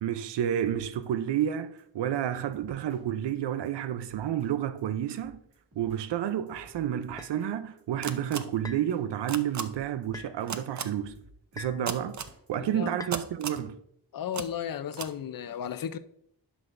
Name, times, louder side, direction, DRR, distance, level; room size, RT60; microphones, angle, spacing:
voice 1, 0.0-5.4 5.8-11.2 11.5-12.2 12.5-13.8, right 10 dB, 85° right, 0.6 m, -30 dB
Drum kit, 0.7-1.1 1.4-1.5 1.8-1.9 2.2-2.3 2.5-3.0 3.3-3.4 3.7-3.8 4.0-4.5 4.8-4.9 5.2-6.0 6.3-7.5 7.8-7.9 8.2-8.3 8.5-9.0 9.3-10.5 10.8-12.5, right 1 dB, 60° right, 2.5 m, -56 dB
sound 1, 7.2-7.4 8.6-8.9 10.1-10.3 11.6-11.9 13.0-13.2, left 4 dB, 10° left, 0.6 m, -43 dB
sound 2, 8.0-8.4 9.3-9.6 10.5-10.8 11.9-12.3 13.1-13.6 14.3-14.4 14.9-15.1, right 6 dB, 45° right, 0.6 m, -33 dB
voice 2, 12.6-13.0 14.1-16.0, left 9 dB, 55° left, 0.5 m, -34 dB
11.0 x 6.1 x 2.5 m
wide cardioid pair, 85°, 41 cm